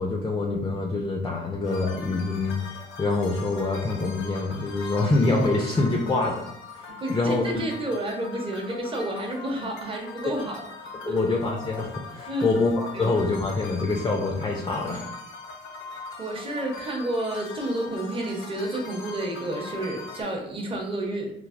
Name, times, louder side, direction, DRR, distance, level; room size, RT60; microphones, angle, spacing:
voice 1, 0.0-2.5 3.0-6.3 6.7-7.6 11.0-15.1, left 3 dB, 20° left, 0 dB, 0.4 m, -25 dB
sound 1, 1.6-20.2, left 4 dB, 75° left, 0.6 m, -41 dB
voice 2, 7.0-11.2 12.3-12.6 12.9-13.2 15.9-21.3, right 1 dB, 25° right, -1 dB, 0.7 m, -30 dB
3.1 x 2.0 x 2.4 m, 0.75 s
cardioid pair, 90°, 20 cm